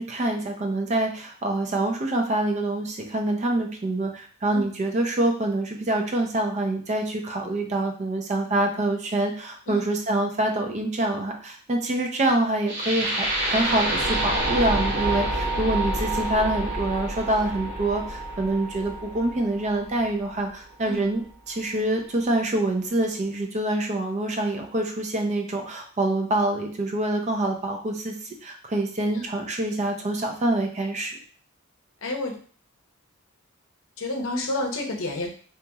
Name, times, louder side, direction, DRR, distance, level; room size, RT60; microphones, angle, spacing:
voice 1, 0.0-28.2 28.4-31.1, right 1 dB, 35° right, 3 dB, 0.5 m, -26 dB
sound 1, 12.7-20.7, right 1 dB, 55° right, 0.8 m, -28 dB
voice 2, 32.0-32.3 34.0-35.3, left 2 dB, 70° left, 2 dB, 0.6 m, -29 dB
2.8 x 2.8 x 2.3 m, 0.44 s
head